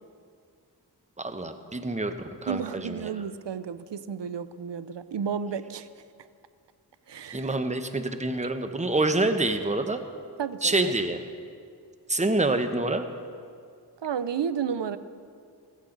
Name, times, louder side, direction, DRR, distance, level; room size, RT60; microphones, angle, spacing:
voice 1, 1.2-2.1 2.4-3.1 7.3-10.0 10.6-11.2 12.1-13.1, right 2 dB, 15° right, 8 dB, 1.0 m, -26 dB
voice 2, 2.5-5.9 7.1-7.6 10.4-11.0 14.0-15.0, right 7 dB, 75° right, 14 dB, 0.6 m, -32 dB
15.5 x 14.5 x 3.9 m, 2.2 s
cardioid pair, 45°, 42 cm